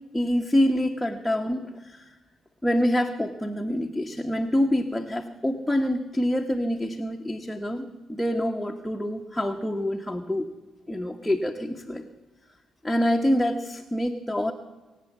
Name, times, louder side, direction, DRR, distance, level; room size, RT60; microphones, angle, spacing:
voice 1, 0.1-2.2 2.6-10.5 10.9-12.1 12.8-14.5, equal, 5° left, 2 dB, 0.9 m, -26 dB
23.5 x 8.2 x 7.1 m, 1.2 s
cardioid pair, 90°, 0 cm